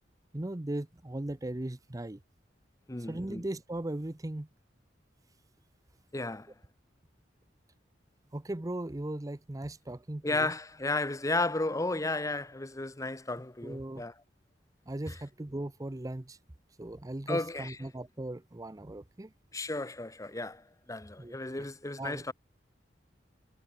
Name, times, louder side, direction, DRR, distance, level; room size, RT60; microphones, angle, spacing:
voice 1, 0.3-2.2 3.1-4.5 8.3-10.5 13.6-14.0 14.9-16.4 16.8-19.3 21.2-21.4 22.0-22.2, right 1 dB, 20° right, 0.6 m, -38 dB
voice 2, 2.9-3.4 6.1-6.5 10.2-14.1 15.1-15.2 17.3-17.8 19.5-22.3, left 2 dB, 20° left, 1.0 m, -33 dB
head